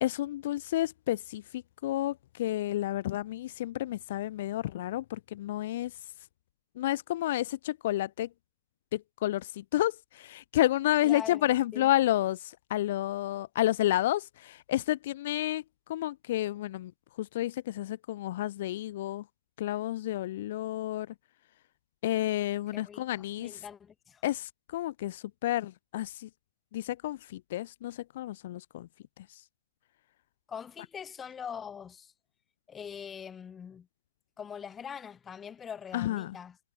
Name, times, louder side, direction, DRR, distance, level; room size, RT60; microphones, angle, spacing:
voice 1, 0.0-5.9 6.8-8.3 8.9-15.6 15.9-16.9 17.2-19.2 19.6-21.1 22.0-23.6 24.2-26.3 26.7-28.9 29.3-29.4 35.9-36.4, left 14 dB, 55° left, 0.4 m, -30 dB
voice 2, 11.0-11.9 22.7-24.2 30.5-32.1 32.7-33.9 34.4-36.6, left 7 dB, 15° left, 0.8 m, -43 dB
hypercardioid pair, 130°, 0 cm